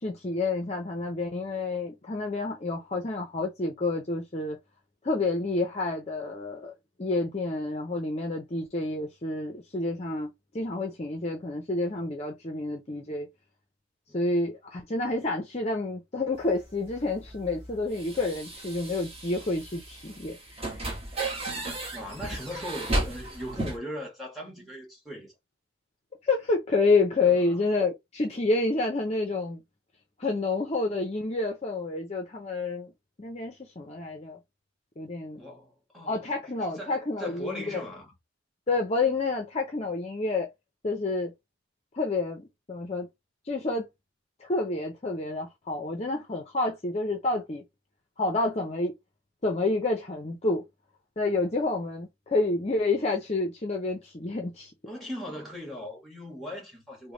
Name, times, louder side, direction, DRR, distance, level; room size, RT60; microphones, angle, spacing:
voice 1, 0.0-4.6 5.0-6.7 7.0-10.3 10.5-13.3 14.1-20.9 26.2-29.6 30.2-32.9 33.2-34.4 35.0-35.4 36.1-37.8 38.7-40.5 40.8-41.3 41.9-43.1 43.4-43.9 44.4-47.6 48.2-48.9 49.4-50.6 51.2-54.7, left 3 dB, 30° left, 0.5 m, -29 dB
sound 1, 16.4-23.8, right 1 dB, 30° right, 1.1 m, -35 dB
voice 2, 21.9-25.3 27.2-27.6 35.4-36.2 36.7-38.1 54.9-57.1, equal, ahead, 1.2 m, -39 dB
3.2 x 2.1 x 3.8 m
head